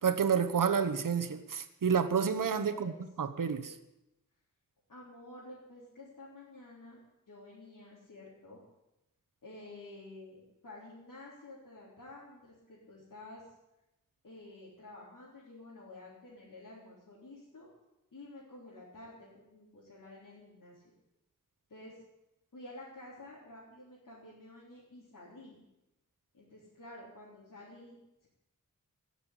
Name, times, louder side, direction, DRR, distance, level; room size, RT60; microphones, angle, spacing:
voice 1, 0.0-2.9 3.2-3.7, right 6 dB, 85° right, 9 dB, 1.1 m, -29 dB
voice 2, 2.6-3.0 4.9-7.0 7.3-8.6 9.4-13.5 14.2-17.7 18.1-20.9 21.7-22.0 22.5-25.6 26.3-28.3, left 2 dB, 85° left, -8 dB, 3.9 m, -51 dB
16.5 x 6.9 x 10.0 m, 0.92 s
wide cardioid pair, 100°, 32 cm